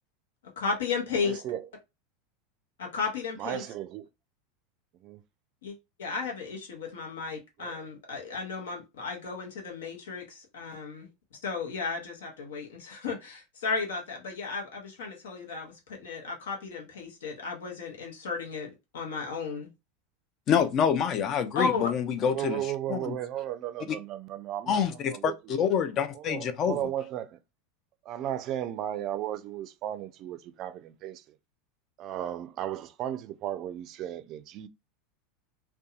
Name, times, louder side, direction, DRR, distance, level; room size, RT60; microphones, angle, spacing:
voice 1, 0.6-1.4 2.8-3.6 5.6-11.1 11.4-19.7 21.5-21.9, left 4 dB, 80° left, 0.9 m, -34 dB
voice 2, 1.2-1.6 3.4-4.0 5.0-5.2 7.6-7.7 22.3-24.8 25.1-25.3 26.2-27.4 28.1-31.2 32.0-34.7, right 11 dB, 50° right, 0.4 m, -35 dB
voice 3, 20.5-23.2 24.7-26.8, left 7 dB, 45° left, 0.5 m, -27 dB
2.6 x 2.2 x 2.4 m
hypercardioid pair, 95°, 0 cm